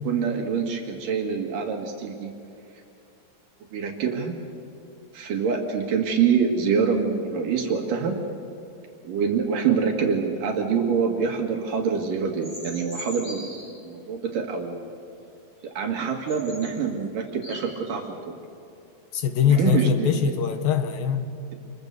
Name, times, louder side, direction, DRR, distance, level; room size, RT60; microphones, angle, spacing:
voice 1, 0.0-2.3 3.7-4.4 5.1-8.2 9.0-13.5 13.8-14.9 15.8-18.4 19.4-20.3, right 6 dB, 70° right, 2 dB, 3.5 m, -25 dB
sound 1, 12.4-13.7 15.8-15.9 16.3-16.7 17.3-18.0, equal, 15° left, 7.3 m, -40 dB
voice 2, 19.1-21.3, left 7 dB, 85° left, 7 dB, 3.3 m, -22 dB
27.0 x 22.5 x 6.7 m, 2.7 s
omnidirectional pair, 4.0 m